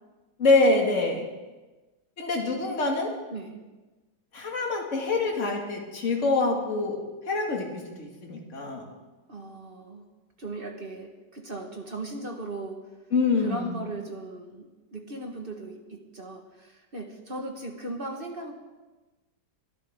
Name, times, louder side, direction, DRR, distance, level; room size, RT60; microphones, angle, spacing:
voice 1, 0.4-1.3 2.2-3.1 4.3-8.9 13.1-13.8, left 3 dB, 40° left, 0 dB, 2.4 m, -25 dB
voice 2, 9.3-10.0 10.4-12.8 13.4-18.5, right 2 dB, 30° right, 2 dB, 1.5 m, -38 dB
23.5 x 13.0 x 3.7 m, 1.2 s
omnidirectional pair, 2.1 m